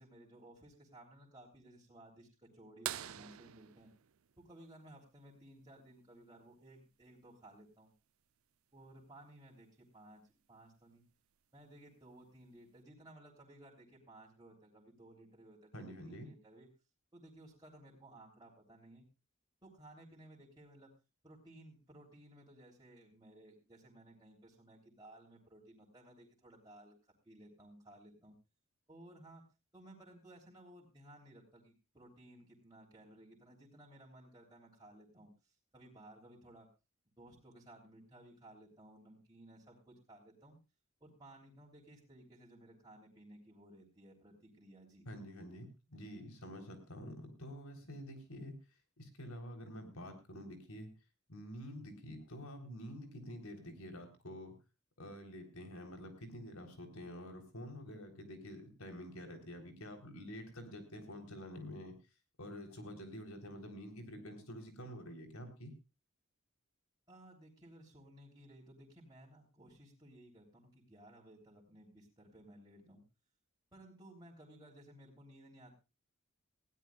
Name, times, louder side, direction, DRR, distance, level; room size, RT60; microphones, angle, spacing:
voice 1, 0.0-3.9 4.4-7.9 8.7-11.0 11.5-16.7 17.1-19.1 19.6-20.9 21.2-28.4 28.9-29.4 29.7-36.7 37.2-40.6 41.0-45.1 67.1-73.1 73.7-75.7, right 1 dB, 20° right, -4 dB, 3.4 m, -58 dB
sound 1, 2.8-5.3 7.2-7.3 9.6-9.7 11.4-11.6 12.4-12.5, right 11 dB, 85° right, 0.6 m, -45 dB
voice 2, 15.7-16.3 45.1-48.5 49.0-50.9 51.3-54.5 55.0-62.0 62.4-65.7, equal, 90° left, 5 dB, 3.7 m, -48 dB
20.0 x 16.0 x 2.4 m, 0.28 s
head